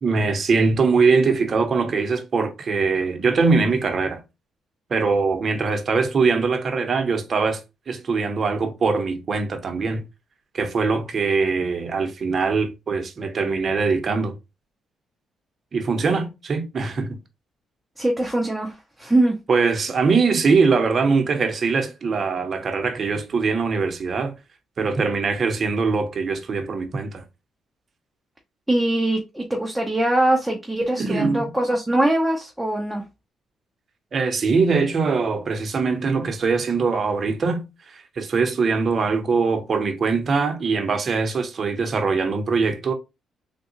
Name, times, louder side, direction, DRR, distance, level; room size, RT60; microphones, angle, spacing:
voice 1, 0.0-4.2 4.9-7.6 7.9-10.0 10.5-14.3 15.7-17.2 19.5-24.3 24.8-27.2 31.0-31.5 34.1-37.6 37.9-42.9, right 4 dB, 45° right, 0.8 m, -22 dB
voice 2, 18.0-18.7 19.0-19.3 28.7-33.0, right 1 dB, 5° right, 0.7 m, -22 dB
3.6 x 2.3 x 2.9 m
cardioid pair, 90°, 0 cm